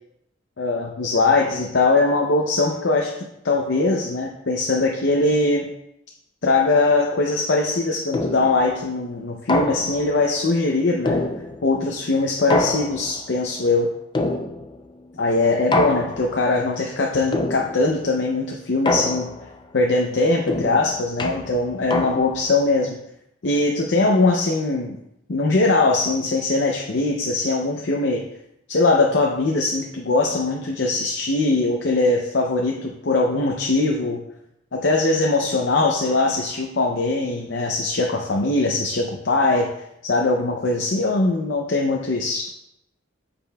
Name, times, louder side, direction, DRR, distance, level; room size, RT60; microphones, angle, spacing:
voice 1, 0.6-3.1 3.4-5.7 6.4-11.2 11.6-13.9 15.1-19.3 19.7-23.0 23.4-25.0 25.3-28.2 28.7-34.2 34.7-39.7 40.0-42.5, left 3 dB, 65° left, 0 dB, 0.6 m, -21 dB
sound 1, 8.1-8.7 9.5-10.2 11.1-11.8 12.5-13.3 14.1-14.9 15.7-16.4 17.3-18.0 18.9-19.6 20.5-22.5, left 2 dB, 25° left, 0.4 m, -25 dB
8.7 x 5.2 x 2.3 m, 0.81 s
head